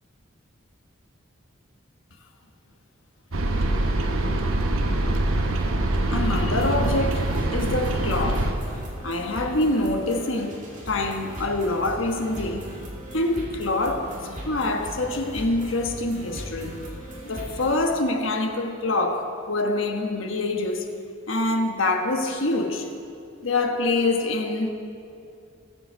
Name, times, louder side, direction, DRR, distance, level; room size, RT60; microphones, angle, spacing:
sound 1, 3.3-8.5, right 1 dB, 90° right, 1.0 m, -24 dB
voice 1, 6.1-8.5 9.0-12.7 13.1-14.1 14.4-16.8 17.2-20.9 21.3-22.9 23.4-24.7, left 2 dB, 75° left, 4 dB, 1.2 m, -25 dB
sound 2, 6.2-17.8, right 1 dB, 35° right, 2.3 m, -38 dB
20.5 x 7.1 x 4.6 m, 2.5 s
head